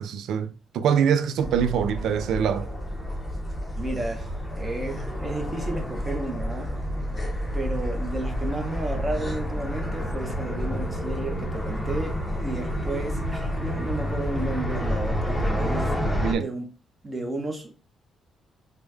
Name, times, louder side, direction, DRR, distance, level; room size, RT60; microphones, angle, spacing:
voice 1, 0.0-2.7 16.2-16.5, right 8 dB, 80° right, 0.3 m, -24 dB
sound 1, 1.4-16.3, equal, 15° left, 0.7 m, -29 dB
voice 2, 3.8-6.7 7.5-15.9 16.3-16.7 17.0-17.7, right 2 dB, 25° right, 0.9 m, -32 dB
3.3 x 2.2 x 3.2 m
cardioid pair, 90°, 0 cm